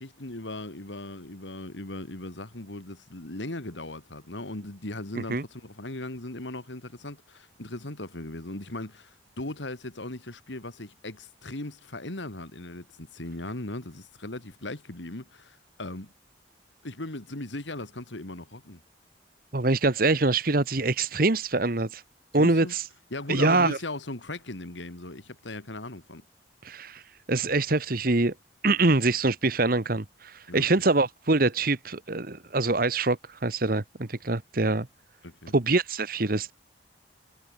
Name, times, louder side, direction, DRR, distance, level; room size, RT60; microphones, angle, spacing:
voice 1, 0.0-16.1 16.8-18.8 22.4-22.7 23.1-26.3 30.5-30.7 35.2-35.6, left 2 dB, 85° left, 2.7 m, -38 dB
voice 2, 19.5-22.0 22.3-22.9 23.3-23.8 26.6-27.0 27.3-28.3 28.6-34.9 35.5-36.5, right 2 dB, 50° right, 1.4 m, -24 dB
head